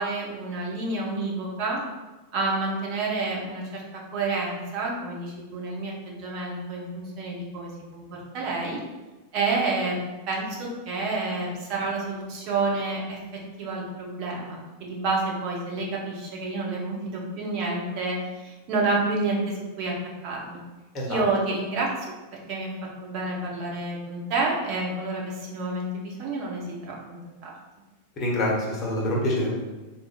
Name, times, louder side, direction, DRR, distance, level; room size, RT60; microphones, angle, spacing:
voice 1, 0.0-1.8 2.3-8.0 8.3-8.8 9.3-10.0 10.3-13.2 13.6-19.9 20.2-20.6 21.1-21.9 22.5-22.7 23.0-27.5, right 3 dB, 40° right, -3 dB, 0.8 m, -29 dB
voice 2, 28.2-29.5, left 1 dB, 25° left, -4 dB, 1.1 m, -26 dB
3.8 x 2.8 x 2.4 m, 1.2 s
figure-of-eight pair, 90°, 0 cm